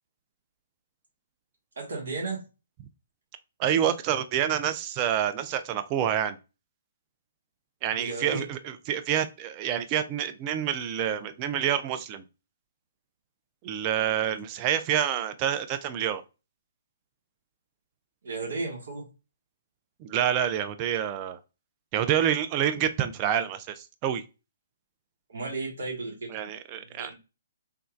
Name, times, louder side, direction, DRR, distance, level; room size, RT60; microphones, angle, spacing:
voice 1, 1.7-2.4 8.0-8.4 18.2-19.1 25.3-26.5 26.8-27.1, right 3 dB, 65° right, -1 dB, 1.6 m, -34 dB
voice 2, 3.6-6.4 7.8-12.2 13.6-16.2 20.0-21.4 21.9-24.2 26.3-27.1, right 10 dB, 30° right, 9 dB, 0.4 m, -27 dB
3.3 x 3.1 x 2.3 m, 0.29 s
figure-of-eight pair, 125°, 0 cm